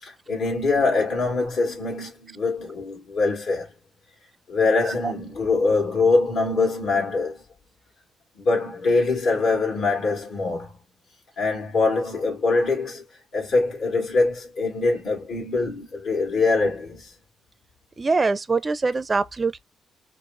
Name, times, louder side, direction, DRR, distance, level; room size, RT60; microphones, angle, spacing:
voice 1, 0.0-3.7 4.5-7.4 8.4-10.8 11.4-13.0 13.3-17.1, left 3 dB, 65° left, 2.2 m, -23 dB
voice 2, 18.0-19.6, right 4 dB, 30° right, 0.4 m, -23 dB
4.7 x 2.4 x 2.5 m
cardioid pair, 90°, 0 cm